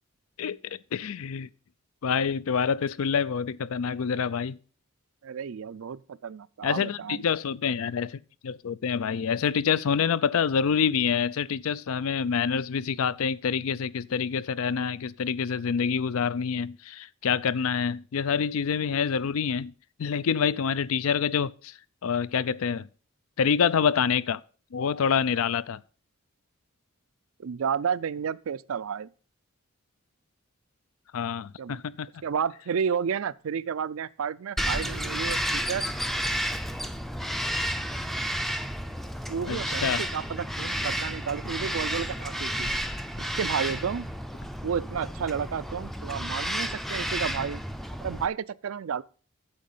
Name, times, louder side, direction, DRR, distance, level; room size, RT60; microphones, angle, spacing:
voice 1, 0.4-1.5 2.0-4.6 6.6-19.7 20.0-22.9 23.4-24.4 24.7-25.8 31.1-32.1 39.5-40.1, left 6 dB, 75° left, 0.4 m, -27 dB
voice 2, 5.2-7.2 27.4-29.1 31.6-31.8 32.2-35.9 39.3-42.7 43.4-44.1 44.6-47.6 48.0-49.0, right 7 dB, 70° right, 0.4 m, -31 dB
Bird vocalization bird call bird song, 34.6-48.3, equal, ahead, 0.4 m, -31 dB
sound 1, 39.6-45.2, left 2 dB, 45° left, 0.7 m, -52 dB
8.9 x 7.4 x 5.4 m
head